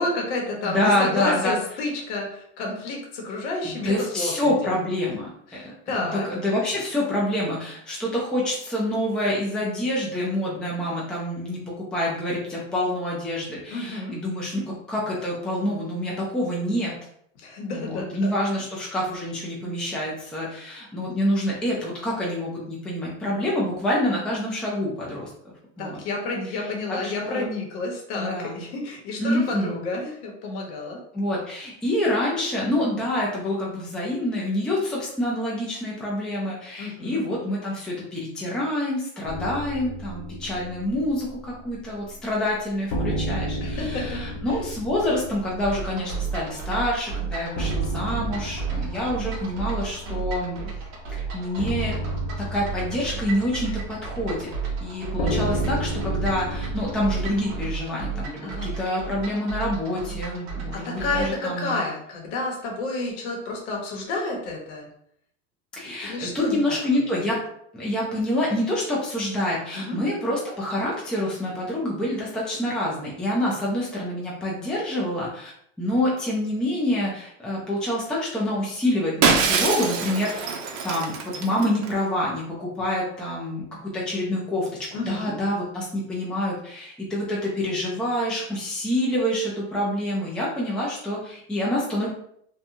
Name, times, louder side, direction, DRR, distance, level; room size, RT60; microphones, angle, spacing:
voice 1, 0.0-4.5 5.5-6.3 13.7-14.2 17.4-18.3 25.8-31.0 36.8-37.2 43.6-44.2 58.4-58.7 60.7-64.9 65.8-66.8 69.7-70.0 84.9-85.3, left 2 dB, 65° left, 0 dB, 1.0 m, -30 dB
voice 2, 0.6-1.6 3.6-5.3 5.6-16.9 17.7-25.3 25.8-26.0 26.5-27.5 28.2-28.6 29.2-29.8 31.1-50.6 51.1-52.0 52.4-54.5 54.8-61.8 65.7-67.4 67.7-75.5 75.8-80.5 80.8-92.1, left 1 dB, ahead, -5 dB, 0.4 m, -27 dB
Striking galve, 39.2-42.1 42.4-42.5 42.9-57.7, equal, 50° left, 0.7 m, -32 dB
sound 1, 45.6-61.5, right 6 dB, 45° right, 0.9 m, -33 dB
Shatter, 79.2-81.9, right 5 dB, 70° right, 0.6 m, -24 dB
2.8 x 2.3 x 2.6 m, 0.68 s
supercardioid pair, 130°, 37 cm